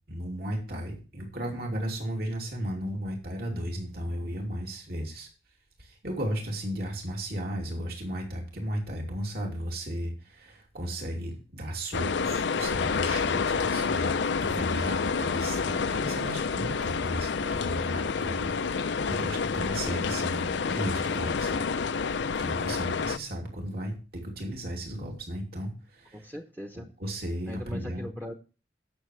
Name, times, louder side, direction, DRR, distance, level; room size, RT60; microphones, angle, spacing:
voice 1, 0.1-5.3 5.8-21.7 22.4-26.3 26.7-28.0, equal, 60° right, 0 dB, 2.9 m, -35 dB
sound 1, 11.9-23.2, left 5 dB, 80° left, 0.5 m, -28 dB
voice 2, 26.1-26.9 27.5-28.3, equal, 10° right, 3 dB, 1.0 m, -40 dB
17.5 x 6.8 x 3.3 m, 0.34 s
head